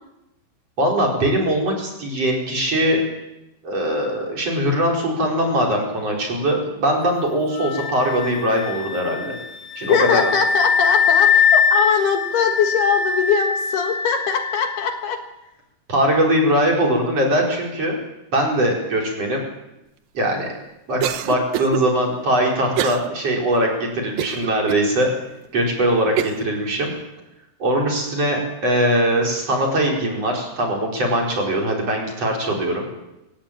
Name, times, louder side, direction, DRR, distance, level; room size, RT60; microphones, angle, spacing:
voice 1, 0.8-3.0 3.6-9.4 9.8-10.3 15.9-18.0 18.3-19.4 20.1-20.5 20.9-25.1 25.5-26.9 27.6-32.8, right 1 dB, 35° right, -1 dB, 5.7 m, -21 dB
Wind instrument woodwind instrument, 7.6-15.0, left 6 dB, 85° left, 5.6 m, -21 dB
voice 2, 9.8-15.2, left 7 dB, 65° left, 4 dB, 3.4 m, -21 dB
Cough, 21.0-21.8 22.8-23.1 23.5-23.6 24.2-24.8 25.4-25.5 26.2-26.5, right 12 dB, 75° right, 2.1 m, -25 dB
27.0 x 16.0 x 8.9 m, 0.92 s
omnidirectional pair, 5.3 m